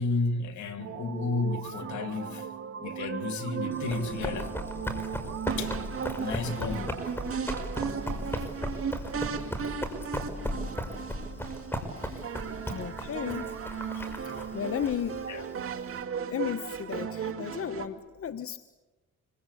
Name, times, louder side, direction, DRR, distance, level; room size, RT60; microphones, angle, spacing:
voice 1, 0.0-2.5 2.8-4.5 5.6-5.7 6.2-7.0 13.9-14.1 15.3-15.4, left 3 dB, 70° left, 3.0 m, -32 dB
sound 1, 0.8-17.9, right 7 dB, 45° right, 2.3 m, -36 dB
Run, 3.7-16.0, equal, 5° left, 5.6 m, -36 dB
voice 2, 10.2-10.9 12.0-12.3 12.7-13.5 14.2-15.3 16.2-18.6, left 8 dB, 50° left, 1.2 m, -35 dB
26.0 x 24.5 x 8.6 m
cardioid pair, 90°, 30 cm